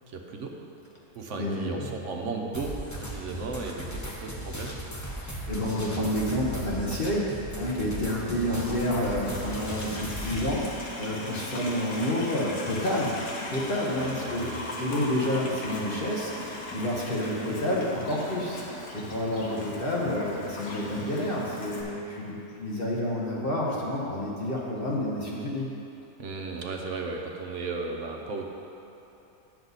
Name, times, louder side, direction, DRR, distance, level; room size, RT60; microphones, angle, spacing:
voice 1, 0.1-0.5 1.2-4.8 8.3-8.7 14.0-14.6 26.2-28.5, right 4 dB, 60° right, 1 dB, 0.9 m, -35 dB
voice 2, 1.3-1.9 5.2-13.2 13.5-25.7, left 1 dB, 40° left, -5 dB, 1.0 m, -29 dB
sound 1, 2.5-10.5, equal, 25° left, 0.4 m, -37 dB
Livestock farm animals working animals, 8.5-21.8, left 1 dB, 80° left, 1.6 m, -39 dB
9.5 x 7.0 x 4.0 m, 2.9 s
omnidirectional pair, 1.6 m